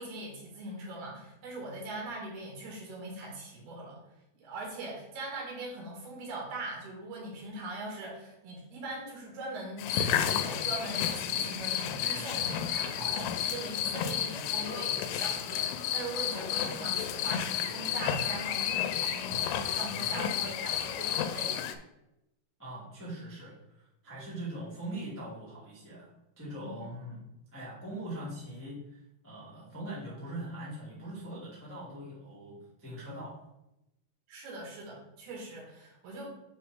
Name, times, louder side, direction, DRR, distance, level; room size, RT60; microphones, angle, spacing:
voice 1, 0.0-4.0 4.4-21.6 26.6-26.7 34.3-36.3, right 2 dB, 70° right, -2 dB, 3.7 m, -41 dB
sound 1, 9.8-21.8, left 9 dB, 85° left, 2.6 m, -31 dB
voice 2, 22.6-27.2 27.5-28.8 29.2-33.4, right 1 dB, 10° left, -8 dB, 0.6 m, -41 dB
9.2 x 3.4 x 3.6 m, 0.88 s
omnidirectional pair, 4.8 m